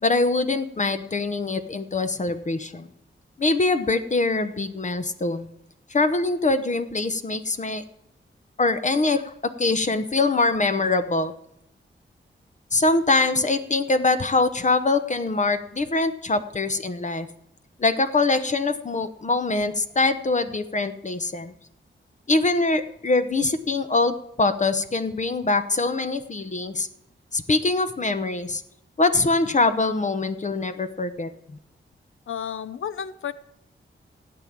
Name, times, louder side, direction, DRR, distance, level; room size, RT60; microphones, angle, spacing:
voice 1, 0.0-2.9 3.4-5.5 5.9-7.8 8.6-9.3 9.6-11.3 12.7-17.3 17.8-21.5 22.3-26.9 27.3-28.6 29.0-31.3, left 3 dB, 35° left, 10 dB, 0.9 m, -23 dB
voice 2, 32.3-33.3, left 8 dB, 85° left, 14 dB, 0.6 m, -32 dB
15.5 x 8.6 x 7.4 m, 0.81 s
wide cardioid pair, 130°, 20 cm